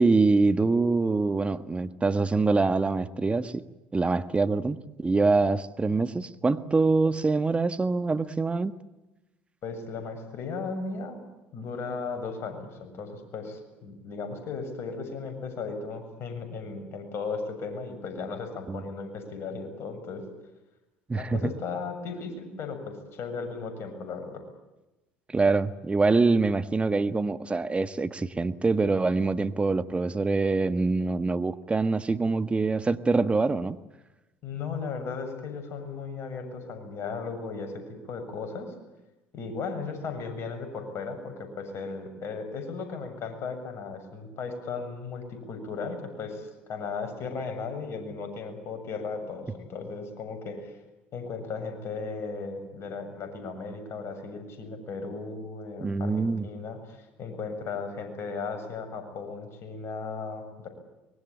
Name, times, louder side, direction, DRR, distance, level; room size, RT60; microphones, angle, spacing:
voice 1, 0.0-3.7 3.9-8.7 18.7-18.8 21.1-21.5 25.3-33.8 55.8-56.5, right 3 dB, 20° right, 11 dB, 1.7 m, -25 dB
voice 2, 9.6-11.2 11.5-20.2 21.1-24.4 34.4-38.7 39.3-50.7 51.1-60.7, left 4 dB, 50° left, 6 dB, 7.5 m, -36 dB
25.0 x 21.5 x 8.8 m, 1.0 s
hypercardioid pair, 65°, 6 cm